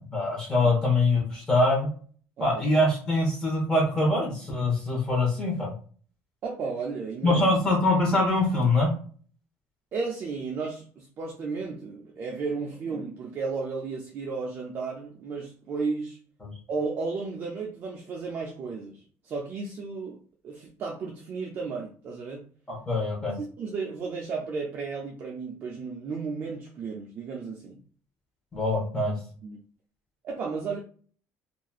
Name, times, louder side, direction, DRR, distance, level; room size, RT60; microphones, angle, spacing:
voice 1, 0.1-1.9 2.4-5.7 7.2-8.9 16.4-16.5 22.7-23.4 28.5-29.1, left 2 dB, 15° left, 1.0 m, -24 dB
voice 2, 6.4-7.5 9.9-16.2 16.7-22.5 23.3-27.8 29.0-29.6 30.2-30.8, right 4 dB, 35° right, 0.4 m, -34 dB
2.9 x 2.4 x 2.3 m
cardioid pair, 160°, 6 cm